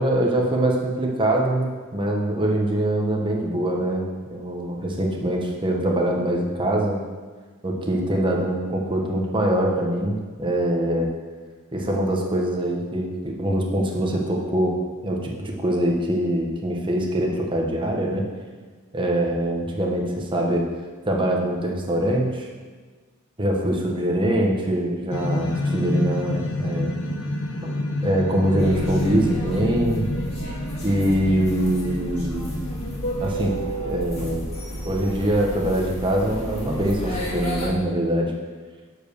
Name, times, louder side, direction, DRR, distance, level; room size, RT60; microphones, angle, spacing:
voice 1, 0.0-7.0 7.6-11.1 11.7-14.8 15.0-18.2 18.9-20.6 21.1-22.5 23.4-26.9 28.0-30.1 30.8-32.7 33.2-34.4 34.8-38.3, right 1 dB, 25° right, 0 dB, 1.2 m, -23 dB
sound 1, 25.1-33.6, left 1 dB, 65° left, 1.1 m, -28 dB
sound 2, 28.6-37.7, right 1 dB, 30° left, 2.0 m, -32 dB
7.1 x 5.2 x 6.9 m, 1.5 s
head